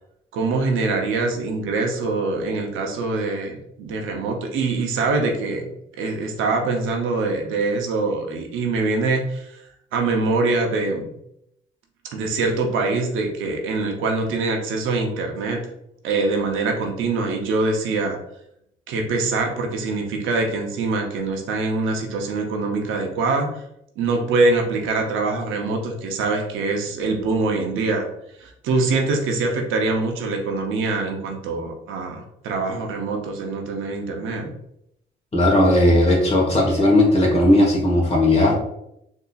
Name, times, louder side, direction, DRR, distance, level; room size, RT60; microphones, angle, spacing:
voice 1, 0.3-5.7 6.0-9.6 9.9-11.1 12.1-15.6 16.0-18.2 18.9-23.5 24.0-28.1 28.4-34.5, right 3 dB, 90° right, 2 dB, 0.7 m, -24 dB
voice 2, 35.3-38.6, left 1 dB, 30° left, -1 dB, 1.3 m, -16 dB
4.0 x 2.7 x 2.4 m, 0.77 s
cardioid pair, 90°, 20 cm